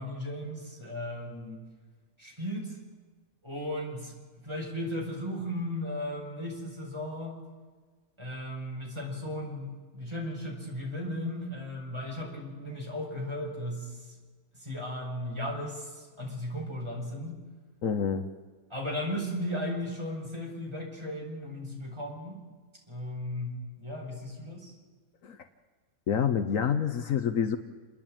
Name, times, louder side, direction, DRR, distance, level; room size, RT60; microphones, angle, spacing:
voice 1, 0.0-1.6 2.2-2.8 3.4-4.1 4.4-7.4 8.2-14.1 14.5-17.4 18.7-22.4 22.9-24.7, left 1 dB, 20° right, -2 dB, 5.5 m, -36 dB
voice 2, 17.8-18.2 25.2-25.4 26.1-27.6, left 7 dB, 65° left, 8 dB, 1.3 m, -27 dB
29.0 x 10.5 x 8.9 m, 1.4 s
omnidirectional pair, 1.5 m